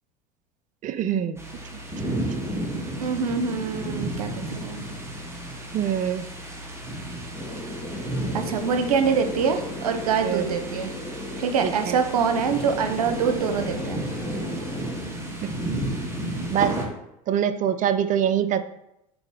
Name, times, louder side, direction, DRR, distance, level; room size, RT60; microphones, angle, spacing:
voice 1, 0.8-1.4 1.7-1.8 5.7-6.3 10.2-10.5 11.6-12.0 15.4-15.5 16.5-16.8 17.3-18.6, right 9 dB, 45° right, 12 dB, 0.6 m, -24 dB
sound 1, 1.4-16.9, right 1 dB, 15° right, 1.7 m, -33 dB
voice 2, 3.0-4.8 8.3-10.9 11.4-14.1, right 6 dB, 90° right, 7 dB, 0.8 m, -25 dB
sound 2, 7.3-15.0, left 1 dB, 30° left, 2.6 m, -36 dB
6.2 x 4.2 x 4.9 m, 0.83 s
hypercardioid pair, 90°, 19 cm